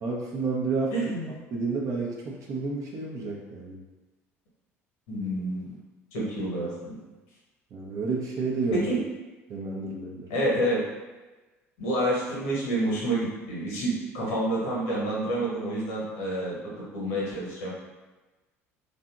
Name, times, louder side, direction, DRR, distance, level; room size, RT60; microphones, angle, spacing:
voice 1, 0.0-0.9 1.5-3.8 7.7-8.9 9.5-10.3, right 4 dB, 45° right, -2 dB, 0.7 m, -30 dB
voice 2, 0.9-1.3 5.1-5.7 6.1-6.9 8.7-9.0 10.3-10.8 11.8-16.6 16.9-17.7, right 1 dB, 65° left, -6 dB, 1.0 m, -28 dB
2.7 x 2.4 x 2.3 m, 1.2 s
figure-of-eight pair, 60°, 8 cm